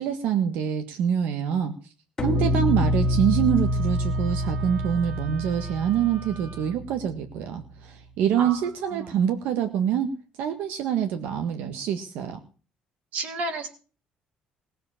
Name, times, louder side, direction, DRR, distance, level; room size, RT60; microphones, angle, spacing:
voice 1, 0.0-1.7 2.2-10.1 10.4-12.4, right 9 dB, 90° right, 7 dB, 1.7 m, -26 dB
sound 1, 2.2-7.4, left 1 dB, 20° left, 1.6 m, -26 dB
Wind instrument woodwind instrument, 2.3-6.7, right 6 dB, 30° right, 2.7 m, -45 dB
voice 2, 8.4-9.2 13.1-13.7, right 3 dB, 60° right, 6 dB, 3.1 m, -33 dB
19.0 x 7.9 x 7.3 m, 0.38 s
cardioid pair, 180°, 3 cm